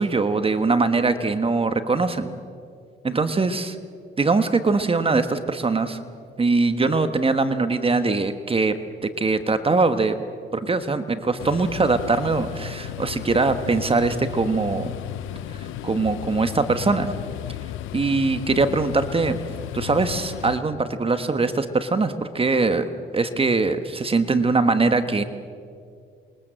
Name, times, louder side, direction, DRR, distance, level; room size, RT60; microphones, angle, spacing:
voice 1, 0.0-2.3 3.0-3.8 4.2-6.0 6.4-8.7 9.2-10.2 10.5-14.9 15.6-17.1 17.9-19.4 19.7-22.8 23.1-25.2, right 3 dB, 30° right, 9 dB, 1.5 m, -22 dB
sound 1, 11.4-20.6, left 12 dB, 90° left, 0.8 m, -34 dB
27.5 x 22.5 x 7.7 m, 2.2 s
cardioid pair, 90°, 20 cm